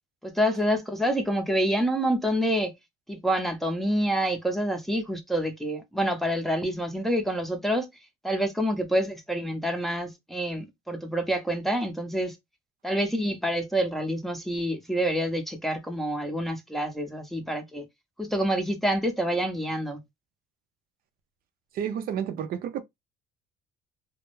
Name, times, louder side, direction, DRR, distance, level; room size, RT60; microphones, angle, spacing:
voice 1, 0.2-2.7 3.1-7.9 8.2-12.3 12.8-17.8 18.2-20.0, equal, ahead, 0.5 m, -27 dB
voice 2, 21.7-22.8, right 9 dB, 60° right, 0.4 m, -30 dB
2.2 x 2.0 x 3.0 m
cardioid pair, 110°, 17 cm